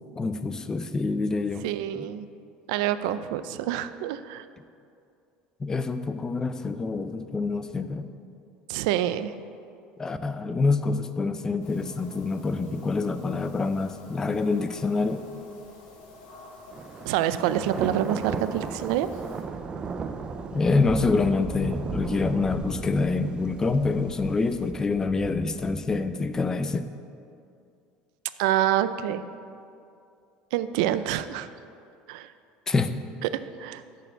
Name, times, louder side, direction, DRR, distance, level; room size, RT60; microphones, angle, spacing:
voice 1, 0.2-1.7 2.0-2.1 5.6-8.1 10.0-15.2 20.5-26.9 32.7-32.9, left 3 dB, 20° left, 11 dB, 0.5 m, -26 dB
voice 2, 1.6-2.2 2.7-4.4 8.7-9.3 17.0-19.1 28.4-29.2 30.5-31.5 32.1-32.3 33.2-33.8, right 12 dB, 85° right, 13 dB, 0.4 m, -27 dB
sound 1, 11.6-19.4, left 2 dB, 80° left, 1.9 m, -49 dB
Thunder, 16.7-26.6, right 5 dB, 30° right, 0.5 m, -36 dB
6.6 x 6.5 x 7.5 m, 2.5 s
supercardioid pair, 125°, 3 cm